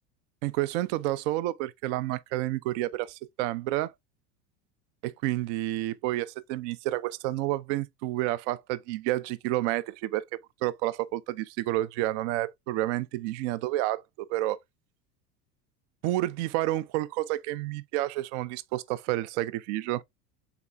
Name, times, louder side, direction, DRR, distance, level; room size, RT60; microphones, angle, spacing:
voice 1, 0.4-3.9 5.0-10.3 10.6-14.6 16.0-20.0, right 16 dB, 50° right, 0.5 m, -30 dB
5.9 x 3.9 x 2.2 m
figure-of-eight pair, 75°, 48 cm